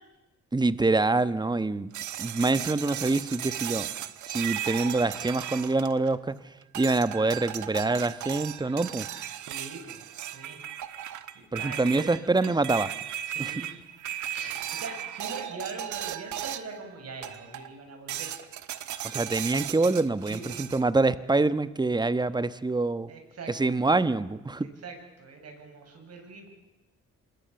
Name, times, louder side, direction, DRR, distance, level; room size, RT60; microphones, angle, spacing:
voice 1, 0.5-1.9 2.2-3.9 4.3-6.3 6.7-9.1 11.5-12.9 13.4-13.5 19.0-23.1 23.5-24.7, right 3 dB, 15° right, 14 dB, 1.1 m, -25 dB
sound 1, 1.9-6.3 6.7-16.8 17.2-17.7 18.1-20.8, right 11 dB, 75° right, 1.4 m, -36 dB
voice 2, 9.4-10.6 11.3-12.7 13.3-13.8 14.1-18.3 20.3-20.8 23.1-23.9 24.6-26.5, right 3 dB, 55° right, 4 dB, 7.3 m, -43 dB
26.5 x 21.5 x 7.0 m, 1.0 s
cardioid pair, 90°, 30 cm